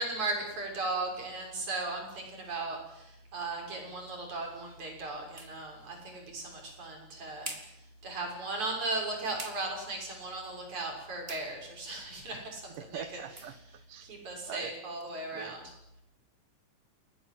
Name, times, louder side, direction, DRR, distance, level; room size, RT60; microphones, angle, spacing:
voice 1, 0.0-13.2 14.0-15.7, right 2 dB, 65° right, 1 dB, 7.9 m, -37 dB
sound 1, 4.8-15.1, right 2 dB, 20° right, 3.3 m, -51 dB
voice 2, 12.8-13.5 13.9-14.1 14.5-14.7 15.3-15.5, right 9 dB, 85° right, 11 dB, 2.9 m, -42 dB
30.0 x 18.0 x 7.9 m, 0.84 s
omnidirectional pair, 3.6 m